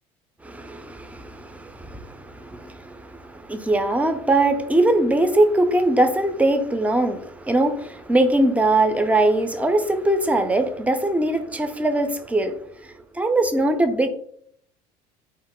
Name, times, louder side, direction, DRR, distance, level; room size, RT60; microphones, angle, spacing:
voice 1, 0.4-12.6 13.1-14.1, right 2 dB, 5° right, 8 dB, 0.3 m, -21 dB
2.2 x 2.0 x 3.6 m, 0.64 s
hypercardioid pair, 75°, 20 cm